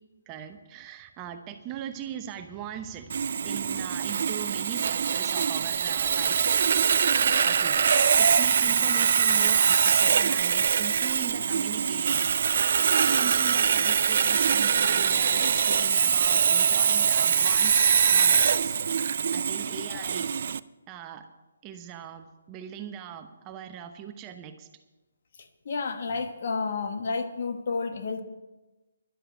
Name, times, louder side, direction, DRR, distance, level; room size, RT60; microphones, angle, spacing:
voice 1, 0.3-6.4 7.4-12.3 13.0-18.8 19.3-20.3 20.9-21.3 21.6-24.7, right 9 dB, 20° right, 7 dB, 0.9 m, -40 dB
Sawing, 3.1-20.6, right 7 dB, 55° right, 0.4 m, -23 dB
voice 2, 25.6-28.2, left 4 dB, 55° left, 7 dB, 1.4 m, -31 dB
11.5 x 7.5 x 9.2 m, 1.1 s
hypercardioid pair, 150°, 0 cm